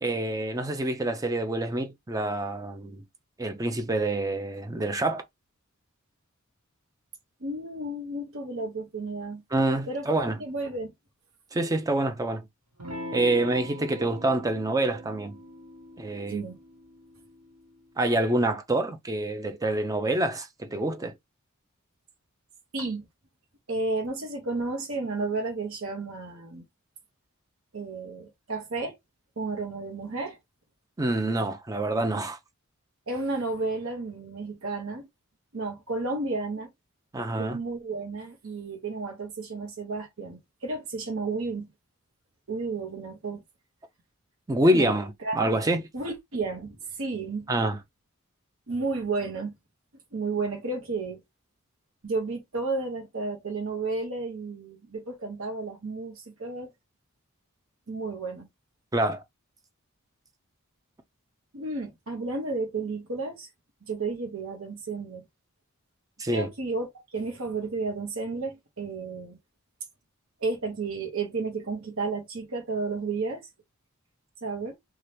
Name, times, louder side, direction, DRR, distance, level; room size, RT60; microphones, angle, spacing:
voice 1, 0.0-3.0 3.4-5.2 9.5-10.4 11.5-12.5 13.1-15.4 16.0-16.4 18.0-21.1 31.0-32.4 37.1-37.6 44.5-45.8 47.5-47.8 58.9-59.2 66.2-66.5, right 1 dB, 15° right, 0.4 m, -26 dB
voice 2, 7.4-9.4 9.9-10.1 10.4-10.9 16.3-16.6 22.7-23.0 23.7-26.6 27.7-29.0 29.4-30.4 33.1-35.1 35.5-36.7 37.4-41.7 42.5-43.4 44.6-44.9 45.2-45.4 45.9-47.4 48.7-49.5 50.1-51.2 52.0-56.7 57.9-58.5 61.5-63.5 63.8-65.2 66.3-66.9 67.1-69.4 70.4-73.5 74.4-74.8, right 3 dB, 70° right, 0.9 m, -32 dB
Electric guitar / Strum, 12.8-17.9, equal, 90° right, 1.3 m, -42 dB
2.8 x 2.4 x 3.2 m
head